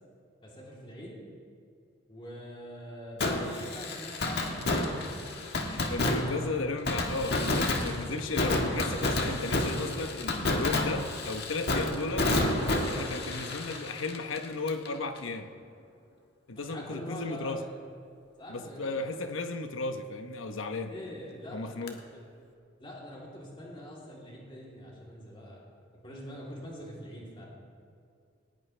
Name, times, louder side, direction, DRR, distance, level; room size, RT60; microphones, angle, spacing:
voice 1, 0.4-1.2 2.1-5.1 6.2-6.4 13.0-13.5 16.6-17.7 18.4-19.2 20.9-22.2 22.8-25.7 26.0-27.5, equal, 25° left, -5 dB, 3.3 m, -44 dB
Fireworks, 3.2-14.9 15.2-15.3 21.9-22.0, left 2 dB, 55° left, 1.6 m, -30 dB
voice 2, 5.6-12.3 12.9-15.5 16.5-17.6 18.5-20.9 21.5-22.0, left 3 dB, 85° left, 7 dB, 1.0 m, -35 dB
20.0 x 18.5 x 3.4 m, 2.3 s
head